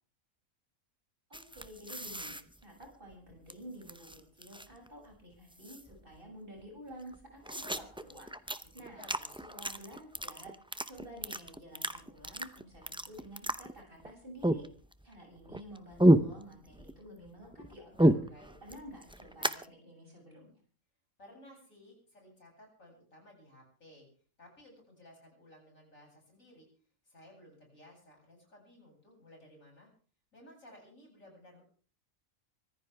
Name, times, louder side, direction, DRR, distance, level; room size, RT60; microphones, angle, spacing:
sound 1, 1.3-3.5 3.8-4.9 5.1-5.2 5.5-6.2 6.6-6.7 6.9-14.1 14.4-15.1 15.4-17.0 17.3-19.6, right 1 dB, 5° right, 0.3 m, -31 dB
voice 1, 1.3-9.1 9.5-10.5 10.8-14.7 15.0-18.1 18.6-20.6, equal, 40° right, -1 dB, 7.7 m, -51 dB
voice 2, 8.6-9.5 17.9-18.5 21.2-24.1 24.4-26.7 27.0-29.9 30.3-31.6, left 1 dB, 65° left, -1 dB, 8.3 m, -57 dB
24.5 x 15.5 x 3.5 m, 0.42 s
omnidirectional pair, 1.5 m